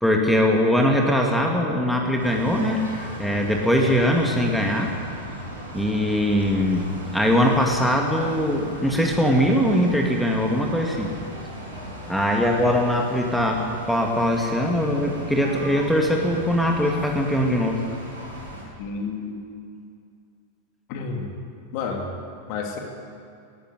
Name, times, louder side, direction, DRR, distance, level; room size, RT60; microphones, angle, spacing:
voice 1, 0.0-2.8 3.2-4.9 5.7-11.1 12.1-17.8, equal, ahead, 1 dB, 2.3 m, -21 dB
sound 1, 2.2-18.6, equal, 80° right, 6.7 m, -37 dB
voice 2, 18.8-19.4 20.9-21.3 21.7-22.1 22.5-22.8, left 5 dB, 45° left, 2 dB, 2.9 m, -30 dB
19.5 x 13.5 x 9.9 m, 2.5 s
figure-of-eight pair, 90°, 0 cm